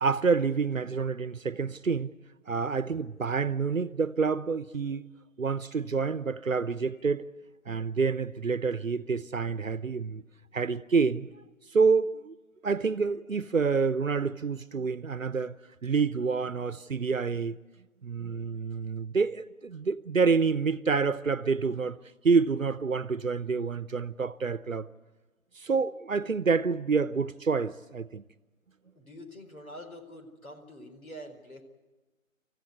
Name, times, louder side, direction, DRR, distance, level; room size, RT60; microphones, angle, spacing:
voice 1, 0.0-2.1 2.5-5.1 5.4-7.3 7.7-10.2 10.5-11.3 11.7-12.3 12.6-15.6 15.8-17.6 18.0-22.0 22.2-24.9 25.5-28.2, right 5 dB, 70° right, 0.9 m, -28 dB
voice 2, 29.0-31.6, equal, 90° left, 4.5 m, -45 dB
28.0 x 14.5 x 9.5 m
figure-of-eight pair, 155°, 41 cm